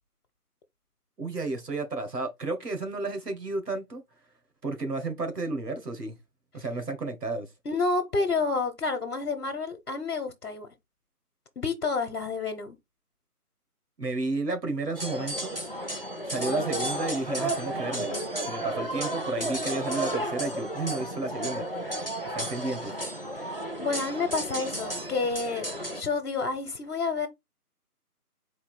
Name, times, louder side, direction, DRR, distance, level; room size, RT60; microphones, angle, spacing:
voice 1, 1.2-4.0 4.6-6.2 6.5-7.5 14.0-15.6 16.2-22.0 22.3-23.0, right 3 dB, 85° right, 1.7 m, -32 dB
voice 2, 7.6-10.7 11.6-12.8 23.8-27.3, left 4 dB, 70° left, 1.0 m, -29 dB
sound 1, 14.9-26.0, right 1 dB, 40° left, 0.5 m, -32 dB
4.3 x 2.8 x 4.3 m
figure-of-eight pair, 175°, 46 cm